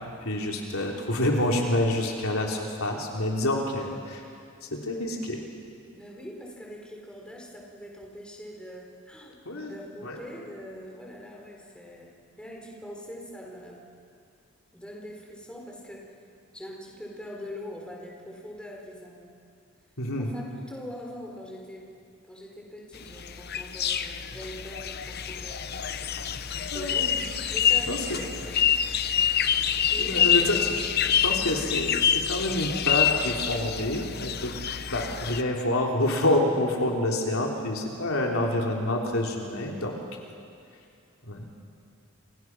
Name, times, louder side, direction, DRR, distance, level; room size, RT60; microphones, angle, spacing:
voice 1, 0.2-4.2 4.6-5.4 9.5-9.8 10.0-10.2 20.0-20.3 26.7-27.3 27.9-28.2 30.0-30.8 31.1-34.5 34.9-40.0 41.2-41.5, left 1 dB, 75° left, 0 dB, 3.5 m, -27 dB
voice 2, 5.9-9.4 9.6-13.8 14.7-16.1 16.5-19.3 20.2-25.8 26.6-27.1 27.5-28.6 29.9-30.5, equal, 5° left, -1 dB, 4.3 m, -43 dB
sound 1, 22.9-35.4, left 8 dB, 45° left, 0.9 m, -27 dB
29.0 x 28.0 x 6.2 m, 2.4 s
head